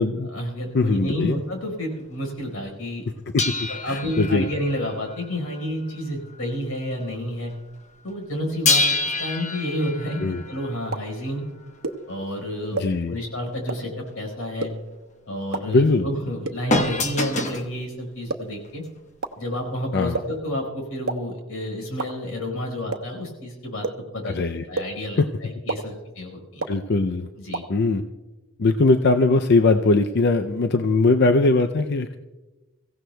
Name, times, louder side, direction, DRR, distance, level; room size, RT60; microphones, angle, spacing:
voice 1, 0.2-3.0 3.7-7.5 8.0-11.4 12.1-12.8 13.1-14.7 15.3-18.8 19.4-23.9 24.1-24.4 24.7-26.6 27.4-27.6, equal, 85° left, 2 dB, 4.6 m, -30 dB
voice 2, 0.7-1.4 3.3-4.5 10.2-10.4 12.7-13.2 15.7-16.1 19.9-20.2 24.2-24.7 25.2-25.3 26.7-27.3 27.7-28.0 28.6-32.2, left 3 dB, 55° left, 7 dB, 0.5 m, -20 dB
sound 1, 3.4-6.5 6.8-7.0 8.7-11.4 16.7-17.7 18.6-18.7, left 2 dB, 35° left, 1.0 m, -27 dB
sound 2, 10.9-11.0 11.8-11.9 12.8-12.9 13.7-13.8 14.6-14.7 15.5-15.6 16.4-16.5 17.4-17.5 18.3-18.4 19.2-19.3 20.1-20.2 21.1-21.2 22.0-22.1 22.9-23.0 23.8-23.9 24.8-24.9 25.7-25.8 26.6-26.7 27.5-27.6, right 3 dB, 75° right, 0.9 m, -26 dB
23.5 x 16.0 x 2.3 m, 1.2 s
head